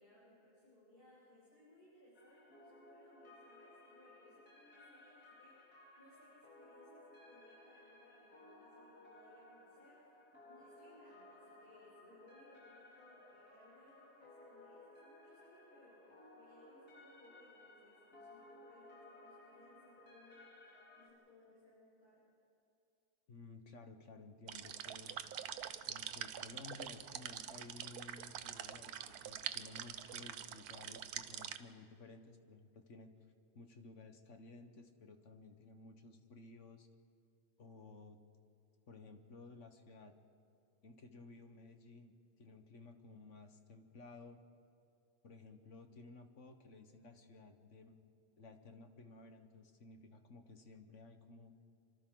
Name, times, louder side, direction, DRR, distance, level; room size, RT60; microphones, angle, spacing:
voice 1, 0.0-10.2 10.4-20.5 20.9-22.2, left 1 dB, 90° left, -10 dB, 7.8 m, -64 dB
sound 1, 2.1-21.1, left 2 dB, 75° left, 3.2 m, -60 dB
voice 2, 23.3-25.2 25.9-33.1 33.5-36.9 37.6-38.2 38.9-40.1 40.8-44.4 45.2-48.0 48.4-51.6, left 3 dB, 50° left, 7 dB, 1.5 m, -56 dB
sound 2, 24.5-31.6, right 9 dB, 75° right, 1.2 m, -45 dB
28.5 x 25.0 x 3.9 m, 2.5 s
omnidirectional pair, 1.7 m